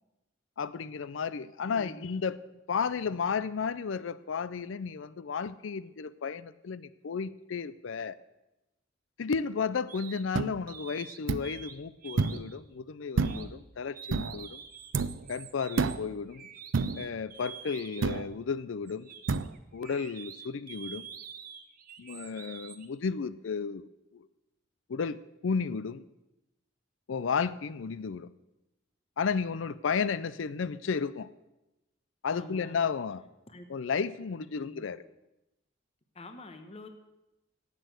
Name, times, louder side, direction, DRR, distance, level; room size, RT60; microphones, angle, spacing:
voice 1, 0.6-2.4 2.7-8.2 9.2-14.6 15.3-16.5 17.0-19.1 19.7-21.1 22.0-24.3 24.9-26.0 27.1-28.3 29.2-31.3 32.2-33.2 33.7-35.0, left 5 dB, 85° left, 17 dB, 0.5 m, -33 dB
voice 2, 1.7-2.0 32.3-32.9 33.5-33.7 34.4-34.9 36.1-36.9, left 2 dB, 35° left, 7 dB, 1.0 m, -47 dB
sound 1, 9.9-10.2 10.7-11.8 12.0-12.6 13.2-13.4 13.9-18.3 18.9-22.9, right 8 dB, 50° right, 0.9 m, -47 dB
sound 2, 10.3-10.5 11.3-11.5 12.2-12.5 13.2-13.6 14.1-14.4 14.9-15.2 15.8-16.1 16.7-17.1 18.0-18.3 19.3-19.5, right 4 dB, 80° right, 0.5 m, -29 dB
11.0 x 8.4 x 7.8 m, 0.96 s
head